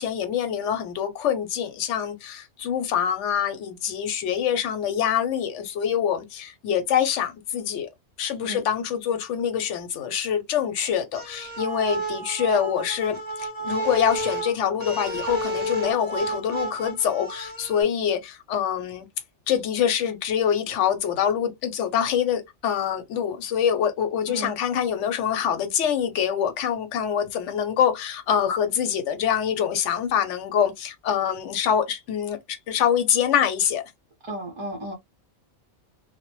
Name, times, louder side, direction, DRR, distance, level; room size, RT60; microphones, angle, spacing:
voice 1, 0.0-7.9 8.2-19.1 19.5-33.8, left 8 dB, 90° left, 0.9 m, -25 dB
sound 1, 11.1-17.8, right 2 dB, 30° left, 0.7 m, -31 dB
voice 2, 34.2-34.9, right 1 dB, 40° right, 0.4 m, -34 dB
2.1 x 2.0 x 2.9 m
omnidirectional pair, 1.2 m